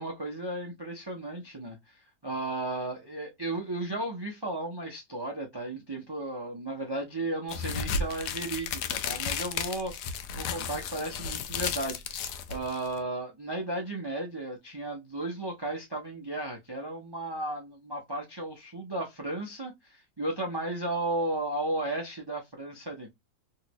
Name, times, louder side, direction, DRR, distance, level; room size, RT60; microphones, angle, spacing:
voice 1, 0.0-9.9 10.3-23.1, right 2 dB, 35° right, 0.3 m, -34 dB
sound 1, 7.5-13.0, left 6 dB, 75° left, 1.1 m, -33 dB
3.1 x 2.7 x 3.0 m
omnidirectional pair, 1.8 m